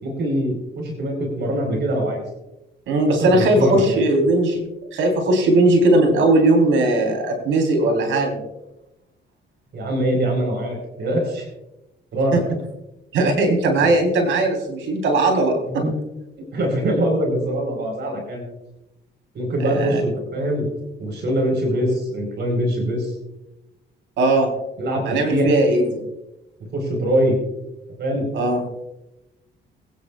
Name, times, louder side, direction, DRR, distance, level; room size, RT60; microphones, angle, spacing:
voice 1, 0.0-2.2 3.1-4.0 9.7-11.5 12.1-12.4 13.8-13.9 15.7-16.0 16.4-18.4 19.3-20.6 21.0-23.1 24.8-25.5 26.7-27.4 28.0-28.3, right 1 dB, 60° right, 1 dB, 4.2 m, -23 dB
voice 2, 2.9-4.6 4.9-8.4 12.3-12.4 13.1-15.8 19.6-20.0 24.2-24.5 25.1-26.0 28.3-28.6, right 2 dB, 85° right, 2 dB, 3.8 m, -18 dB
22.5 x 10.0 x 2.4 m, 0.94 s
cardioid pair, 90°, 20 cm